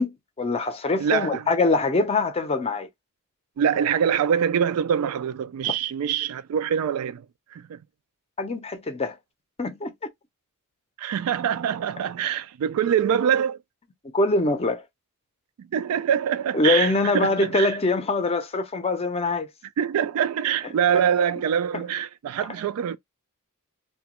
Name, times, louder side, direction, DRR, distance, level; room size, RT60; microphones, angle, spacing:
voice 1, 0.0-2.9 8.4-9.2 9.6-9.9 14.1-14.8 16.5-19.5 21.7-21.8, left 3 dB, 30° left, 0.5 m, -23 dB
voice 2, 1.0-1.4 3.6-7.3 7.5-7.8 11.0-13.6 15.6-17.8 19.8-23.0, right 8 dB, 70° right, 0.3 m, -24 dB
2.9 x 2.2 x 2.9 m
head